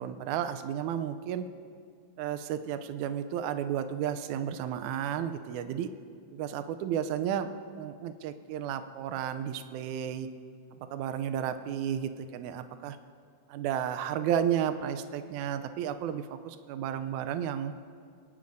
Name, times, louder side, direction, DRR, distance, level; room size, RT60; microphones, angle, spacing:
voice 1, 0.0-1.4 2.2-5.9 6.3-10.3 10.9-13.0 13.5-17.7, right 9 dB, 80° right, 10 dB, 1.9 m, -32 dB
23.0 x 10.5 x 2.6 m, 2.2 s
omnidirectional pair, 3.6 m